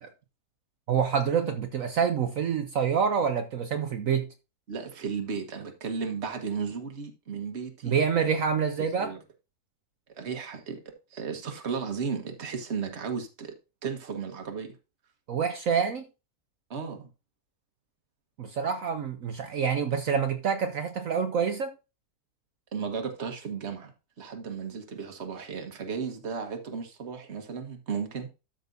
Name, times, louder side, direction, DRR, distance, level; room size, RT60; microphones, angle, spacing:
voice 1, 0.9-4.3 7.8-9.1 15.3-16.1 18.4-21.7, right 7 dB, 60° right, 1.1 m, -27 dB
voice 2, 4.7-8.0 9.0-9.2 10.2-10.8 11.1-13.5 13.8-14.8 16.7-17.1 22.7-23.9 24.2-28.3, right 6 dB, 45° right, 1.6 m, -34 dB
12.5 x 6.0 x 2.7 m
omnidirectional pair, 1.7 m